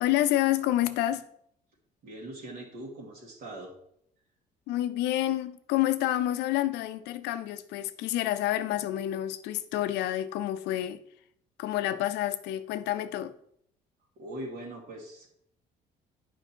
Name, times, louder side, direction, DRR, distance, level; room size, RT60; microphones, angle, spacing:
voice 1, 0.0-1.2 4.7-11.0 11.6-13.3, left 13 dB, 85° left, 0.6 m, -28 dB
voice 2, 2.0-3.8 14.2-15.3, right 1 dB, 65° right, 2.3 m, -41 dB
8.0 x 5.2 x 4.5 m
cardioid pair, 110°, 17 cm